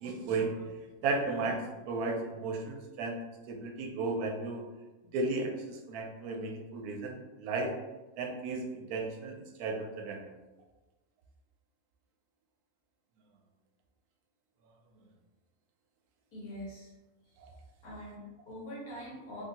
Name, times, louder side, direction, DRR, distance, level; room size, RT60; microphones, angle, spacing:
voice 1, 0.0-0.7 1.0-1.6 1.9-3.2 3.5-4.6 5.1-7.7 8.2-10.4 17.4-17.5, right 3 dB, 90° right, 3 dB, 1.1 m, -34 dB
voice 2, 16.3-16.9 17.8-19.4, equal, 80° left, -6 dB, 1.8 m, -44 dB
3.3 x 2.6 x 2.8 m, 1.1 s
omnidirectional pair, 1.6 m